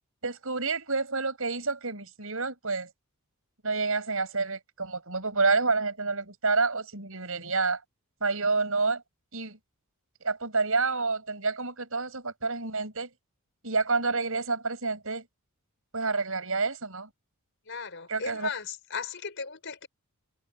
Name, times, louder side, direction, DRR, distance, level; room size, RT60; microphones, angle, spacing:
voice 1, 0.2-2.9 3.6-7.8 8.2-9.0 9.3-9.6 10.2-13.1 13.6-15.3 15.9-17.1 18.1-18.5, right 4 dB, 65° right, 7.3 m, -28 dB
voice 2, 17.6-19.9, left 5 dB, 55° left, 5.2 m, -36 dB
head